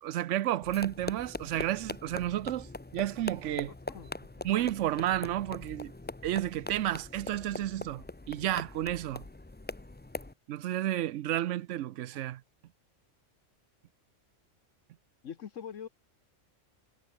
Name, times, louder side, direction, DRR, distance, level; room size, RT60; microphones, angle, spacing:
voice 1, 0.0-3.7 4.4-5.9 6.2-9.2 10.5-12.4, right 13 dB, 75° right, 0.9 m, -31 dB
sound 1, 0.6-10.3, left 2 dB, 15° left, 0.4 m, -42 dB
voice 2, 3.9-4.5 15.2-15.9, left 8 dB, 75° left, 1.4 m, -44 dB
omnidirectional pair, 1.3 m